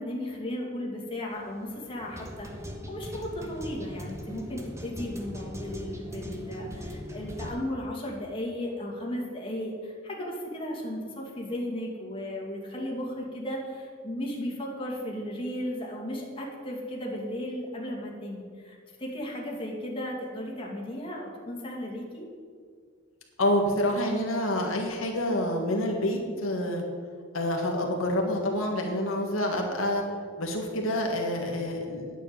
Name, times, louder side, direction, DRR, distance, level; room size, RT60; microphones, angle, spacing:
voice 1, 0.0-22.3, left 1 dB, 25° left, -2 dB, 2.4 m, -35 dB
sound 1, 1.3-7.5, equal, 15° right, 1.3 m, -40 dB
voice 2, 23.4-26.8 27.3-30.0 30.4-32.0, left 1 dB, 80° left, 1 dB, 1.6 m, -27 dB
9.5 x 7.1 x 8.9 m, 2.1 s
head